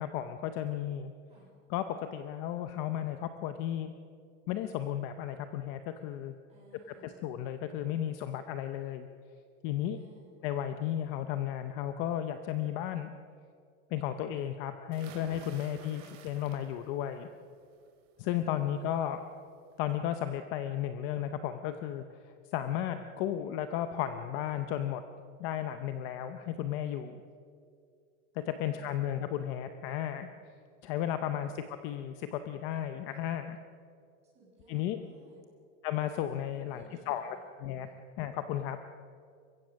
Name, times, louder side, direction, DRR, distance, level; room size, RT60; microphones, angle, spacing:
voice 1, 0.0-1.1 1.7-3.9 4.5-6.3 7.0-9.1 9.6-10.0 10.4-13.1 13.9-17.3 18.2-19.2 19.8-22.0 22.5-25.0 25.4-27.2 28.3-30.3 30.8-31.5 31.8-33.6 34.7-35.0 35.8-37.4 37.6-37.9 38.2-38.8, left 11 dB, 30° left, 9 dB, 0.6 m, -34 dB
voice 2, 6.5-7.2 9.9-10.3 15.5-16.1 18.3-19.1 22.6-22.9 28.4-29.3 31.4-31.6 34.3-35.4 36.4-37.4, right 2 dB, 15° right, -4 dB, 6.9 m, -59 dB
sound 1, 14.9-17.0 17.4-17.8 19.2-19.3 19.7-19.8, right 6 dB, 70° right, 3.6 m, -51 dB
29.0 x 15.5 x 6.4 m, 2.3 s
supercardioid pair, 180°, 37 cm